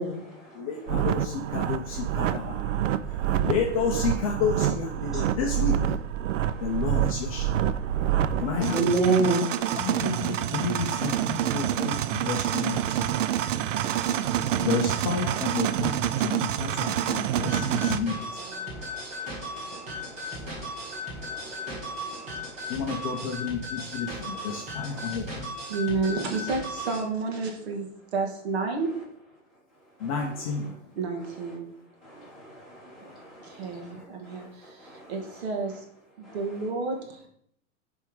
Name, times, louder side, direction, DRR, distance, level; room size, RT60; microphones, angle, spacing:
voice 1, 0.0-1.1 2.5-2.8 3.1-3.5 5.1-5.4 6.4-7.2 8.3-10.3 11.6-15.0 16.5-23.2 24.1-25.4 30.0-30.7 32.0-35.4 36.2-36.4, right 3 dB, ahead, 2.1 m, -35 dB
voice 2, 0.6-2.6 3.4-5.8 6.6-7.4 8.4-8.9 9.8-13.1 14.6-18.2 22.7-25.5 30.0-30.7, left 6 dB, 30° left, 0.6 m, -31 dB
sound 1, 0.9-18.0, right 10 dB, 80° right, 0.5 m, -27 dB
sound 2, 17.5-27.0, left 1 dB, 20° right, 1.7 m, -36 dB
voice 3, 25.7-28.9 30.9-31.7 33.4-35.8 36.2-37.3, right 3 dB, 60° right, 1.5 m, -31 dB
7.2 x 3.6 x 4.7 m
supercardioid pair, 175°, 37 cm